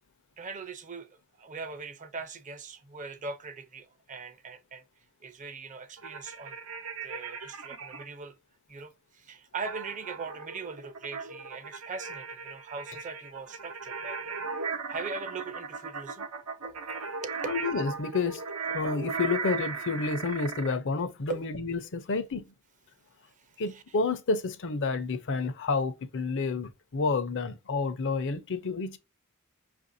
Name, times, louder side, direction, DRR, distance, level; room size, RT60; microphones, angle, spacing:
voice 1, 0.4-4.8 5.2-6.6 7.0-8.4 8.7-14.2 14.9-16.3 16.6-17.4 21.3-21.5 23.4-24.0, right 4 dB, 35° right, 0.6 m, -41 dB
sound 1, 6.0-8.0 9.7-20.7, right 5 dB, 80° right, 0.8 m, -37 dB
voice 2, 17.5-18.4 18.7-22.4 23.6-29.0, left 4 dB, 60° left, 0.6 m, -30 dB
5.6 x 2.6 x 2.6 m
head